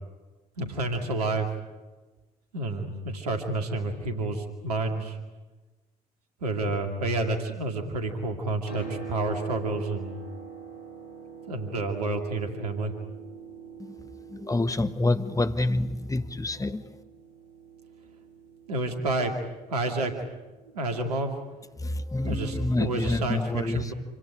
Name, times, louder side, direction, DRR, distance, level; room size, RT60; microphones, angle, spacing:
voice 1, 0.6-1.5 2.5-5.2 6.4-10.1 11.5-12.9 18.7-19.3 19.7-20.1 20.7-21.3 22.2-23.9, right 2 dB, 85° right, 4 dB, 2.5 m, -29 dB
Piano, 8.7-22.2 23.2-23.3, right 6 dB, 90° left, 6.1 m, -44 dB
voice 2, 13.8-17.0 21.8-23.9, left 2 dB, 15° left, 11 dB, 1.5 m, -28 dB
27.0 x 17.5 x 10.0 m, 1.2 s
hypercardioid pair, 45°, 19 cm